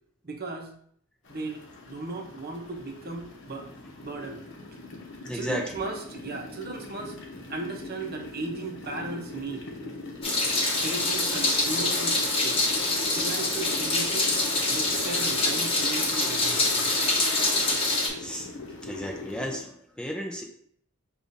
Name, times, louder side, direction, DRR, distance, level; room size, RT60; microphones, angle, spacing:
voice 1, 0.2-0.7 1.3-3.7 4.0-4.4 5.3-7.2 7.5-9.6 10.8-12.6 13.1-14.3 14.7-16.9 17.9-18.1, right 3 dB, 50° right, 3 dB, 0.7 m, -36 dB
sound 1, 1.2-19.6, left 2 dB, 60° left, 0.9 m, -41 dB
voice 2, 5.2-5.8 18.2-18.5 18.8-20.4, equal, 5° left, 0 dB, 0.5 m, -34 dB
Meow, 10.2-18.1, left 2 dB, 25° left, 1.0 m, -25 dB
6.7 x 2.4 x 2.6 m, 0.64 s
head